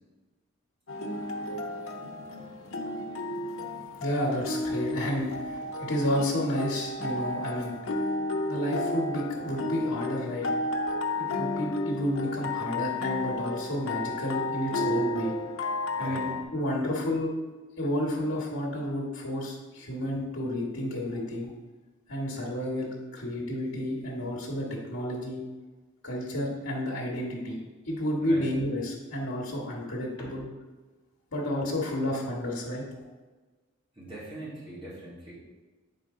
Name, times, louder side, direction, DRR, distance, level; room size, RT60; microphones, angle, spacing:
sound 1, 0.9-16.4, left 2 dB, 85° left, 0.8 m, -32 dB
voice 1, 4.0-7.8 8.5-10.5 11.2-15.3 16.0-17.3 17.8-21.5 22.1-25.4 26.0-27.6 27.8-30.4 31.3-32.8, left 1 dB, 65° left, -4 dB, 1.4 m, -31 dB
voice 2, 15.9-16.3 28.2-28.5 30.2-30.4 33.9-35.3, right 1 dB, 25° right, -9 dB, 2.3 m, -42 dB
7.9 x 5.1 x 3.7 m, 1.3 s
head